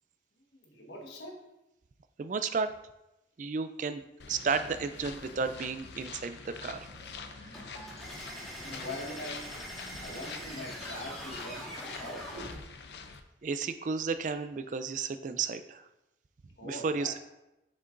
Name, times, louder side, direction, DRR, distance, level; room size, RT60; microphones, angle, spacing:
voice 1, 0.6-1.4 8.6-9.5 10.0-12.5 16.6-17.2, left 1 dB, 90° left, 0 dB, 1.5 m, -42 dB
voice 2, 2.2-2.7 3.4-6.9 7.4-7.7 9.9-10.0 13.4-15.9 16.6-17.2, right 5 dB, 45° right, 10 dB, 0.4 m, -33 dB
sound 1, 4.2-13.2, left 5 dB, 70° left, 0.5 m, -46 dB
sound 2, 4.4-11.7, right 1 dB, 65° right, 2.1 m, -58 dB
sound 3, 7.5-12.6, equal, ahead, 1.6 m, -43 dB
7.4 x 6.7 x 2.5 m, 0.91 s
head